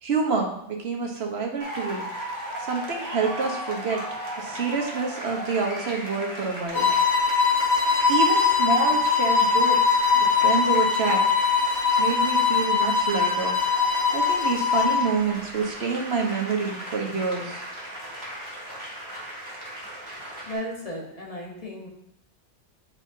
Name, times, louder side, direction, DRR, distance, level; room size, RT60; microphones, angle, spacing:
voice 1, 0.0-2.0 2.6-4.0 4.4-6.9 8.1-11.2 12.0-13.6 14.1-17.6, right 4 dB, 65° right, 1 dB, 1.3 m, -27 dB
sound 1, 1.6-20.5, equal, 15° right, 2.1 m, -37 dB
sound 2, 6.7-15.1, left 5 dB, 70° left, 3.2 m, -21 dB
voice 2, 20.4-21.9, equal, 30° left, -3 dB, 1.4 m, -35 dB
9.3 x 4.8 x 2.8 m, 0.75 s
omnidirectional pair, 1.2 m